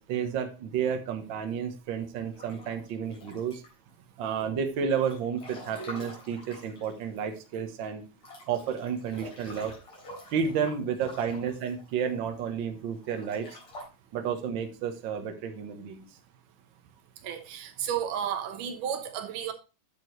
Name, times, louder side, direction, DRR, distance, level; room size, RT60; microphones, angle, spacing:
voice 1, 0.0-3.6 4.2-8.0 8.5-9.8 10.3-13.6 14.1-16.1, right 7 dB, 60° right, 1.3 m, -31 dB
Breathing / Bathtub (filling or washing) / Splash splatter, 2.3-3.9 4.4-7.6 7.8-7.9 8.2-12.4 13.0-13.8, left 1 dB, 55° left, 4.8 m, -47 dB
voice 2, 17.2-19.5, right 9 dB, 90° right, 2.7 m, -32 dB
10.5 x 7.0 x 3.1 m
omnidirectional pair, 3.6 m